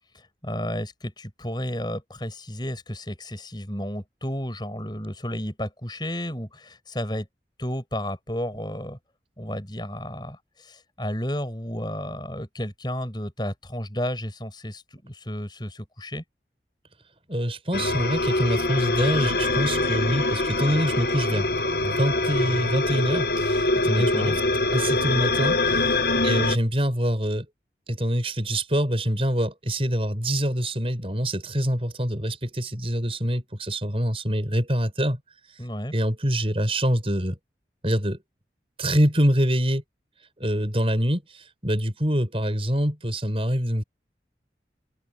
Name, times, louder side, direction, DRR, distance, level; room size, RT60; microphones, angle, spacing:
voice 1, 0.1-7.3 7.6-9.0 9.4-16.2 23.8-24.4 26.1-26.5 35.6-35.9, equal, 25° left, 7.9 m, -32 dB
voice 2, 17.3-21.5 21.8-24.4 24.7-26.0 26.2-27.5 27.9-35.2 35.9-37.4 37.8-38.2 38.8-39.8 40.4-43.8, equal, 30° right, 7.4 m, -25 dB
sound 1, 17.7-26.6, left 2 dB, 60° left, 1.3 m, -24 dB
open air
head